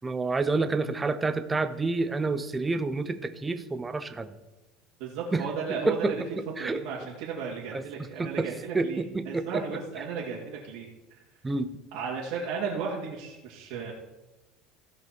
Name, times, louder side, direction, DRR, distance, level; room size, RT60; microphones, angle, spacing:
voice 1, 0.0-4.3 5.3-5.4 5.9-6.1 6.6-6.8 7.7-7.8 8.2-8.5 8.7-9.6 11.4-11.7, right 3 dB, 15° right, 11 dB, 0.7 m, -28 dB
voice 2, 5.0-6.2 6.6-11.2 11.9-13.9, right 5 dB, 70° right, -6 dB, 2.4 m, -35 dB
16.5 x 5.5 x 4.5 m, 1.1 s
cardioid pair, 140°, 0 cm